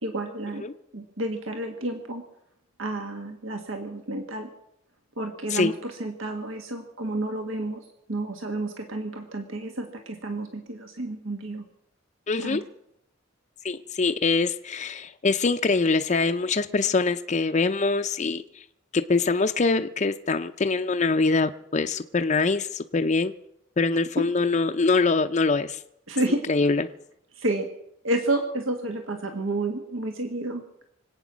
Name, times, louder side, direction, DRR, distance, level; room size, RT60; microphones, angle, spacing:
voice 1, 0.0-0.6 0.9-2.2 2.8-4.5 5.2-11.6 12.4-12.6 24.2-24.3 26.1-26.5 27.3-27.7 28.0-30.6, right 1 dB, 80° right, 5 dB, 1.6 m, -30 dB
voice 2, 12.3-12.6 13.6-18.6 18.9-23.3 23.8-25.8 26.5-26.9, left 3 dB, 35° left, 7 dB, 0.5 m, -24 dB
25.0 x 9.0 x 6.2 m, 0.77 s
head